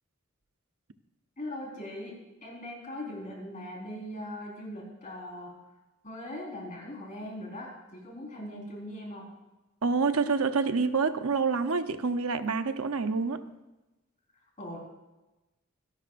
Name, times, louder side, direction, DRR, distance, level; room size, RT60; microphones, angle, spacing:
voice 1, 1.4-5.6 6.0-9.3 14.6-14.8, left 1 dB, 35° left, -1 dB, 4.5 m, -40 dB
voice 2, 9.8-13.4, right 4 dB, 80° right, 9 dB, 0.8 m, -27 dB
25.0 x 12.0 x 2.5 m, 1.0 s
head